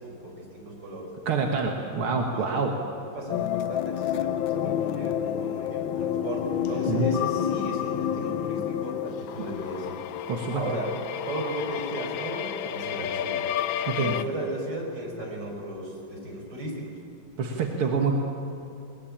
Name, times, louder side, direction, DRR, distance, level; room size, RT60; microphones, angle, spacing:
voice 1, 0.0-1.1 1.9-2.7 3.0-10.0 10.5-10.9 11.3-13.5 14.0-17.0, right 1 dB, 55° right, 0 dB, 5.6 m, -35 dB
voice 2, 1.3-2.7 6.9-7.1 10.3-10.6 13.9-14.2 17.4-18.1, right 4 dB, 85° right, 1 dB, 2.5 m, -26 dB
sound 1, 3.3-14.2, left 10 dB, 70° left, 1.4 m, -29 dB
22.0 x 20.5 x 8.8 m, 2.8 s
omnidirectional pair, 2.3 m